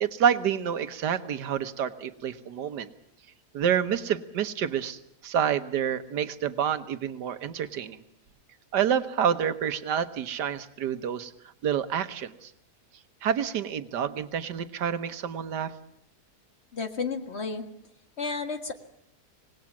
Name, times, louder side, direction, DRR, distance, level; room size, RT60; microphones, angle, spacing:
voice 1, 0.0-2.9 3.5-8.0 8.7-11.3 11.6-12.5 13.2-15.7, right 8 dB, 90° right, 11 dB, 1.7 m, -28 dB
voice 2, 16.7-17.6 18.2-18.7, left 4 dB, 40° left, 6 dB, 1.9 m, -32 dB
25.5 x 19.0 x 7.2 m, 0.72 s
omnidirectional pair, 1.7 m